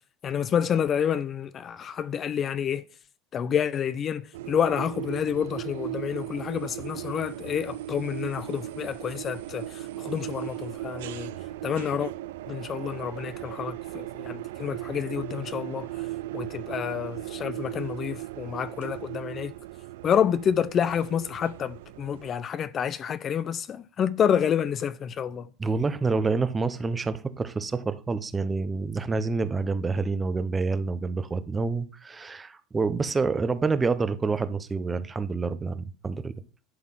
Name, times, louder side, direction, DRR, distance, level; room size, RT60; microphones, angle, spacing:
voice 1, 0.2-2.9 3.3-11.3 11.6-12.1 12.5-16.1 16.3-19.5 20.0-25.5, left 8 dB, 35° left, 0.5 m, -28 dB
sound 1, 4.3-22.3, right 15 dB, 90° right, 0.4 m, -37 dB
voice 2, 25.6-36.3, right 4 dB, 15° right, 0.6 m, -27 dB
11.0 x 3.9 x 7.5 m
supercardioid pair, 125°, 0 cm